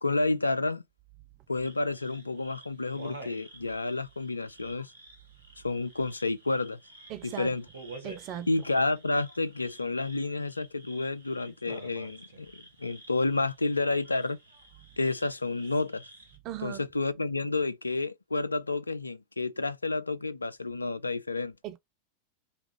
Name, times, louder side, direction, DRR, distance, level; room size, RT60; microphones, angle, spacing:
voice 1, 0.0-0.8 1.5-4.9 5.6-6.8 7.2-7.7 8.5-14.4 15.0-16.0 16.6-21.5, left 3 dB, 80° left, 0.3 m, -30 dB
sound 1, 1.6-16.4, right 2 dB, 75° right, 1.0 m, -50 dB
voice 2, 7.1-7.5 8.0-8.5 16.4-16.8 21.6-21.8, right 11 dB, 40° right, 0.4 m, -38 dB
3.2 x 2.3 x 3.0 m
figure-of-eight pair, 90°, 0 cm